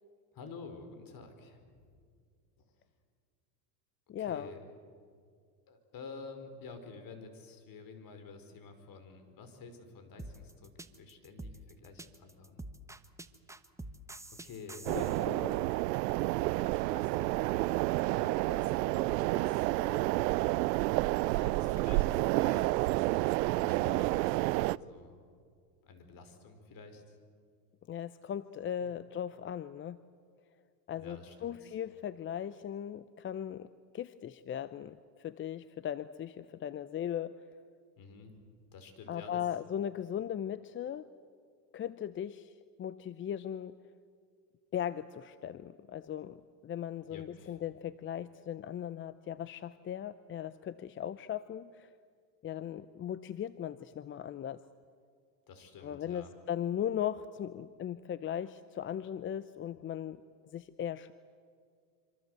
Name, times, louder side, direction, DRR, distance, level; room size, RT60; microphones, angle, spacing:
voice 1, 0.3-1.9 4.2-4.6 5.7-12.6 14.4-15.5 16.4-20.2 21.3-23.1 23.6-25.2 25.8-27.2 28.8-28.9 30.9-31.8 38.0-38.4 38.7-39.4 47.1-47.6 55.5-56.3, left 4 dB, 40° left, 7 dB, 5.2 m, -50 dB
voice 2, 4.1-4.5 14.9-15.6 27.9-30.0 30.9-33.7 33.9-37.3 39.1-41.0 41.7-42.5 42.8-43.8 44.7-51.9 52.4-54.6 55.8-60.2 60.5-61.1, left 10 dB, 25° left, 15 dB, 0.6 m, -38 dB
sound 1, 10.2-15.2, right 2 dB, 5° right, 1.1 m, -47 dB
sound 2, 14.9-24.8, right 20 dB, 75° right, 0.6 m, -30 dB
26.5 x 26.0 x 8.1 m, 2.1 s
supercardioid pair, 105°, 50 cm